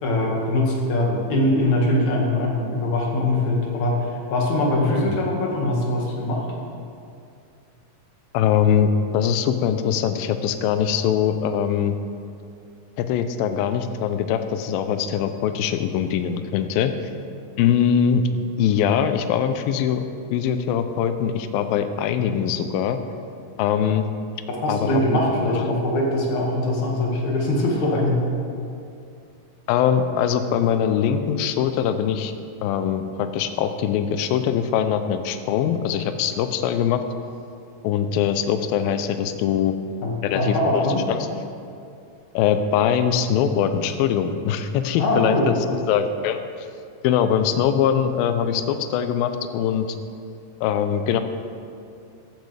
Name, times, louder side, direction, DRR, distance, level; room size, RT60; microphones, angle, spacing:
voice 1, 0.0-6.4 24.6-28.2 40.0-41.0 45.0-45.5, left 1 dB, 55° left, -2 dB, 3.0 m, -22 dB
voice 2, 8.3-12.0 13.0-16.9 17.6-18.2 18.6-20.0 20.3-23.0 23.6-24.1 24.7-25.2 25.6-25.7 29.7-32.3 32.6-37.0 37.8-39.7 40.2-41.3 42.3-45.4 45.7-46.4 47.0-49.9 50.6-51.2, left 8 dB, 80° left, 9 dB, 2.4 m, -22 dB
15.0 x 12.5 x 3.4 m, 2.5 s
omnidirectional pair, 4.3 m